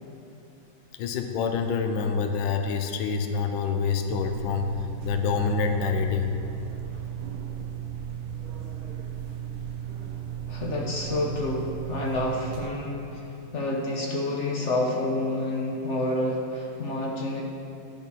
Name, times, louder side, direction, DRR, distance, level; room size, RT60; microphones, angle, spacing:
voice 1, 1.0-6.3, left 5 dB, 85° left, 6 dB, 1.4 m, -27 dB
sound 1, 4.1-12.7, right 9 dB, 85° right, 1.5 m, -35 dB
voice 2, 10.5-13.3 13.5-17.4, left 2 dB, 55° left, -1 dB, 0.8 m, -28 dB
10.5 x 4.2 x 6.0 m, 2.7 s
omnidirectional pair, 2.2 m